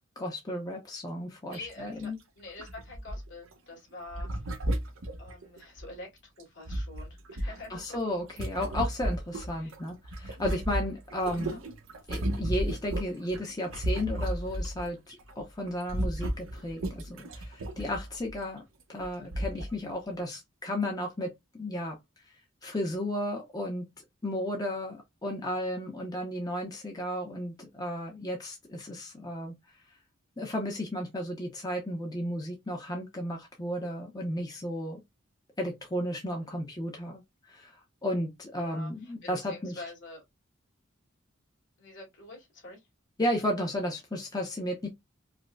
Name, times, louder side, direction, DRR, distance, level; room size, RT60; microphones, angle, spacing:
voice 1, 0.2-2.2 7.4-11.6 12.1-18.6 18.9-22.0 22.3-23.9 24.2-29.5 30.4-35.0 35.6-39.8 43.2-44.9, left 1 dB, 20° left, 0.6 m, -34 dB
voice 2, 1.5-2.1 2.4-4.3 5.2-8.0 9.6-9.7 11.4-11.6 36.5-36.6 38.6-40.2 41.8-42.9, left 2 dB, 65° left, 2.0 m, -47 dB
sound 1, 1.5-1.7 2.0-2.1 2.6-3.5 4.1-5.9 6.4-9.8 10.0-14.9 15.2-15.4 15.7-18.4 19.0-19.1 19.3-19.8 20.2-20.3, right 1 dB, 80° right, 0.7 m, -34 dB
4.9 x 2.1 x 2.2 m
head